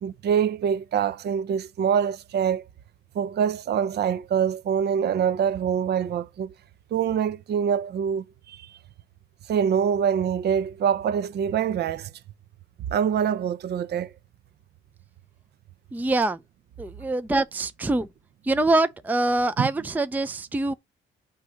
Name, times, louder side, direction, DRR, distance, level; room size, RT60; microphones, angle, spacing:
voice 1, 0.0-2.7 3.1-6.5 6.9-8.7 9.5-12.1 12.9-14.1 19.6-19.7, right 8 dB, 55° right, 0.6 m, -25 dB
voice 2, 15.9-16.4 16.8-18.1 18.4-20.7, right 2 dB, 10° right, 0.5 m, -24 dB
8.2 x 2.9 x 6.2 m
cardioid pair, 90°, 20 cm